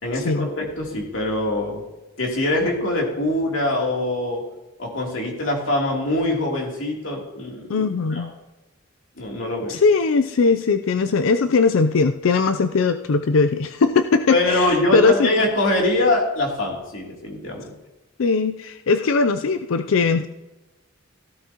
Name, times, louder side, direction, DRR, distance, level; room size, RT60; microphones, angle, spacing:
voice 1, 0.0-1.8 2.2-4.4 4.8-8.3 9.2-9.8 14.3-17.7, left 1 dB, 70° left, -1 dB, 3.1 m, -23 dB
voice 2, 7.7-8.3 9.7-15.3 18.2-20.3, left 4 dB, 85° left, 9 dB, 0.5 m, -19 dB
15.5 x 13.0 x 2.9 m, 1.0 s
head